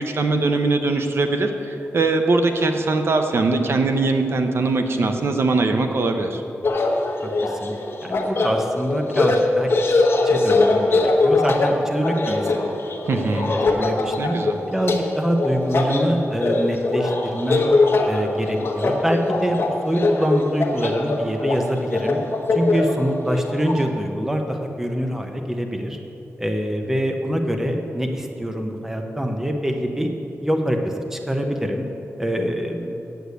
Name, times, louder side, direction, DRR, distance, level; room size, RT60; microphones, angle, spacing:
voice 1, 0.0-6.4 13.1-13.5 14.2-14.6, right 3 dB, 55° right, 6 dB, 0.7 m, -21 dB
sound 1, 6.6-23.9, left 2 dB, 50° left, 1.1 m, -22 dB
voice 2, 7.2-7.7 8.0-12.7 13.1-14.3 14.7-17.8 18.1-22.2 22.5-26.0 26.4-30.1 30.4-31.8 32.2-32.9, equal, 10° right, 4 dB, 0.7 m, -25 dB
8.2 x 8.0 x 8.2 m, 2.9 s
wide cardioid pair, 160°, 5 cm